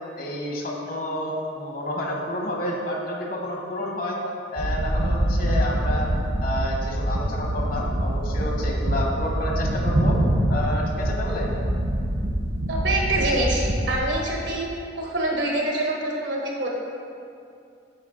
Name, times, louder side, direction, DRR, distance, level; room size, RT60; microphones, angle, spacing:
voice 1, 0.2-4.2 4.5-6.1 6.4-10.1 10.5-11.5, left 1 dB, 55° left, -1 dB, 1.1 m, -30 dB
sound 1, 4.6-14.0, right 1 dB, 60° right, 0.8 m, -24 dB
voice 2, 12.7-14.7 15.0-16.7, right 1 dB, 85° right, -1 dB, 1.3 m, -25 dB
7.7 x 5.0 x 3.9 m, 2.5 s
head